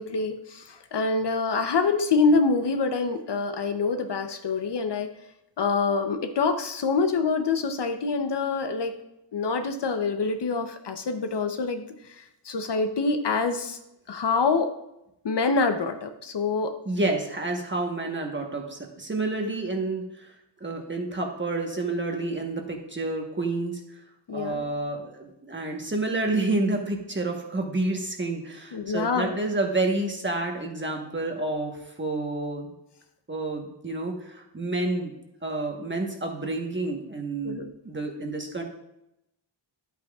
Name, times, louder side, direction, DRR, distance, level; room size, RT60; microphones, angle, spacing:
voice 1, 0.0-5.1 5.6-9.0 9.3-13.8 14.1-14.7 15.2-16.8 24.3-24.7 28.7-29.4 37.4-37.7, left 4 dB, 60° left, 7 dB, 0.8 m, -26 dB
voice 2, 16.9-20.3 20.6-23.8 24.3-32.7 33.3-35.1 35.4-37.6 37.8-38.6, right 2 dB, 25° right, 2 dB, 1.2 m, -29 dB
11.5 x 8.3 x 2.4 m, 0.85 s
wide cardioid pair, 150°, 46 cm